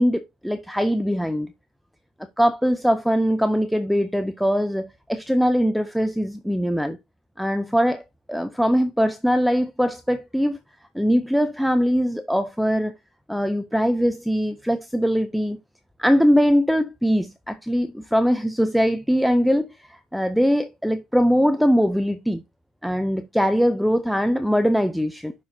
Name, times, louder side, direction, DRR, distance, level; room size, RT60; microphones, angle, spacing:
voice 1, 0.0-1.5 2.4-7.0 7.4-8.0 8.3-10.6 10.9-12.9 13.3-15.6 16.0-22.4 22.8-25.3, equal, ahead, 0.4 m, -21 dB
11.5 x 5.2 x 2.6 m
cardioid pair, 160°, 0 cm